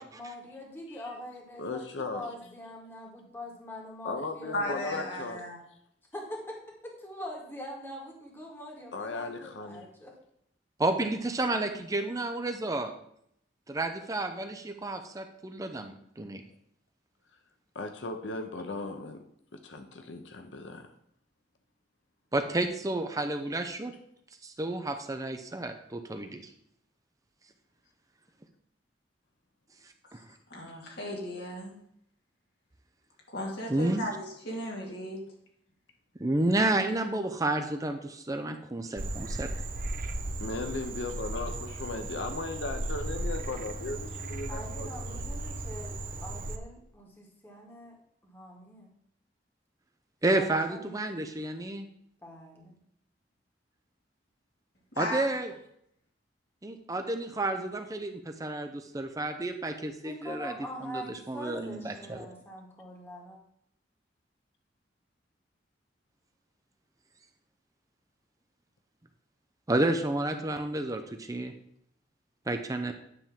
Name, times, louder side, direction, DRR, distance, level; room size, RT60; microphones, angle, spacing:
voice 1, 0.0-5.2 6.1-6.6 6.8-10.2 44.5-48.0 48.2-48.9 50.3-51.0 52.2-52.8 60.0-63.4, equal, 15° left, -1 dB, 2.1 m, -43 dB
voice 2, 1.6-2.3 4.0-5.4 8.9-9.8 17.7-19.2 19.5-20.9 40.4-45.2, left 3 dB, 85° left, 6 dB, 0.8 m, -37 dB
voice 3, 4.5-5.6 30.5-31.7 33.3-35.2 55.0-55.3, left 1 dB, 65° left, -1 dB, 2.5 m, -35 dB
voice 4, 10.8-12.9 13.7-16.4 22.3-23.9 24.4-26.5 30.1-30.2 33.7-34.1 36.2-39.5 50.2-51.9 55.0-55.5 56.6-60.6 60.8-62.3 69.7-71.5 72.5-72.9, right 2 dB, 20° right, 7 dB, 0.6 m, -31 dB
Frog, 39.0-46.6, right 1 dB, 50° right, 0.8 m, -36 dB
9.9 x 3.7 x 7.2 m, 0.72 s
head